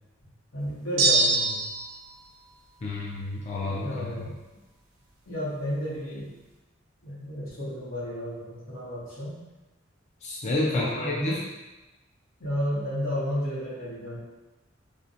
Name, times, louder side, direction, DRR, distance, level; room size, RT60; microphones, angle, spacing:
voice 1, 0.5-1.6 3.8-4.4 5.3-6.3 7.0-9.3 10.7-11.3 12.4-14.2, equal, 85° left, -7 dB, 0.9 m, -32 dB
sound 1, 1.0-1.9, right 3 dB, 90° right, 0.4 m, -22 dB
voice 2, 2.8-4.3 10.2-11.4, left 2 dB, 35° left, -5 dB, 0.3 m, -29 dB
2.6 x 2.1 x 2.6 m, 1.1 s
head